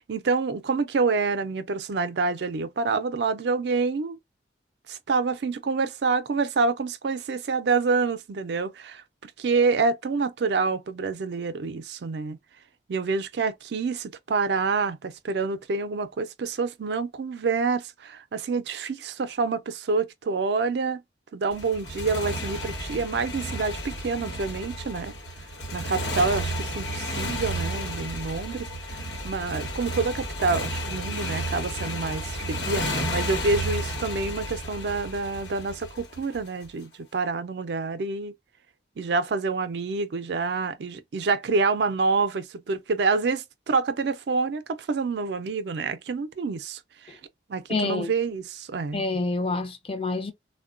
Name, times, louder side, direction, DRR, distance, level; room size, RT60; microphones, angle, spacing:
voice 1, 0.0-4.2 4.9-12.4 12.9-21.0 21.3-25.1 25.7-38.3 39.0-47.2 47.5-49.1, right 4 dB, 70° right, 0.4 m, -27 dB
Motorcycle, 21.5-36.7, equal, 90° left, 1.0 m, -32 dB
voice 2, 47.7-48.1 48.9-50.3, left 3 dB, 30° left, 0.5 m, -27 dB
3.5 x 2.1 x 2.4 m
head